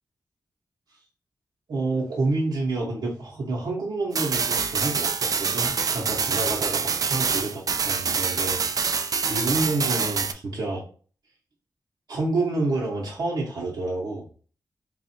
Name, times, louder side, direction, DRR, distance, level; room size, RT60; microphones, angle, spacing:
voice 1, 1.7-10.8 12.1-14.3, right 2 dB, 80° right, -6 dB, 1.0 m, -29 dB
sound 1, 4.1-10.3, right 5 dB, 60° right, 0.4 m, -25 dB
3.6 x 2.4 x 4.2 m, 0.42 s
wide cardioid pair, 95°, 7 cm